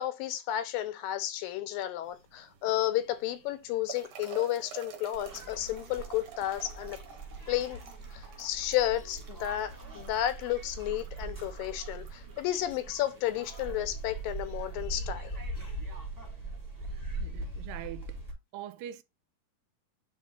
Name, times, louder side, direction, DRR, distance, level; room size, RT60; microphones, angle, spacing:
voice 1, 0.0-7.0 7.5-7.8 8.1-15.4, left 13 dB, 85° left, 2.6 m, -32 dB
sound 1, 2.0-15.0, right 8 dB, 65° right, 3.0 m, -51 dB
sound 2, 5.1-18.3, right 2 dB, 10° right, 0.8 m, -41 dB
voice 2, 16.9-18.2 18.5-19.0, right 11 dB, 80° right, 2.2 m, -43 dB
10.5 x 3.7 x 2.4 m
omnidirectional pair, 4.0 m